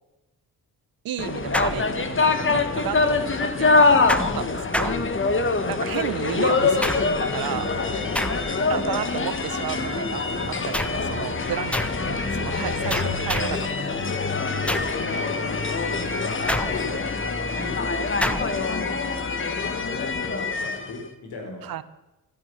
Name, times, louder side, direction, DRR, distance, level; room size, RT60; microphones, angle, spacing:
voice 1, 1.0-3.9 4.2-5.0 5.7-7.7 8.7-14.1 21.6-21.8, right 11 dB, 70° right, 14 dB, 1.0 m, -33 dB
sound 1, 1.2-21.0, left 3 dB, 35° left, 1.5 m, -24 dB
sound 2, 1.5-2.4 4.1-5.6 6.8-7.4 8.1-8.8 10.7-11.1 11.7-12.1 12.9-13.7 14.7-15.1 16.5-17.1 18.2-18.6, equal, 5° left, 0.9 m, -29 dB
voice 2, 7.8-8.4 14.7-17.1 17.5-17.9 18.1-19.4 20.2-21.7, left 2 dB, 90° left, 2 dB, 4.6 m, -38 dB
13.5 x 12.0 x 5.7 m, 0.96 s
cardioid pair, 85°, 36 cm